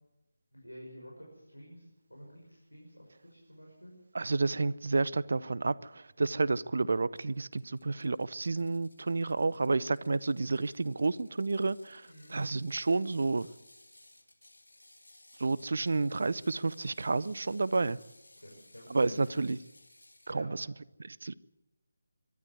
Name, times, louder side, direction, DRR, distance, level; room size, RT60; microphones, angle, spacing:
voice 1, 0.5-1.8 2.1-3.9 7.8-8.0 12.1-12.4 18.4-19.2 20.3-20.5, equal, 90° left, 6.2 m, -50 dB
voice 2, 4.1-13.5 15.4-18.0 18.9-19.6 20.3-20.7 21.0-21.3, right 3 dB, 55° right, 0.7 m, -30 dB
Ratchet pawl, 7.2-20.4, left 2 dB, 75° left, 2.5 m, -60 dB
23.5 x 12.0 x 9.7 m
figure-of-eight pair, 155°, 0 cm